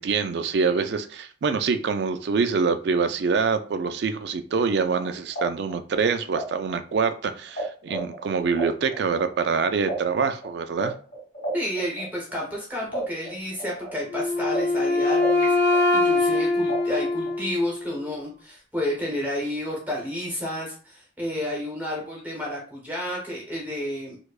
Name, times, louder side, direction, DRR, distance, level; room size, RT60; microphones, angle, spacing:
voice 1, 0.0-10.9, right 5 dB, 60° right, 9 dB, 0.3 m, -25 dB
sound 1, 4.8-7.6 7.9-12.6 12.9-15.4 15.7-17.4, right 1 dB, 35° left, 1.7 m, -34 dB
voice 2, 11.5-24.2, left 1 dB, 10° right, -3 dB, 0.8 m, -31 dB
Wind instrument woodwind instrument, 14.1-18.0, left 2 dB, 60° left, 0.7 m, -23 dB
4.6 x 2.2 x 2.3 m, 0.41 s
head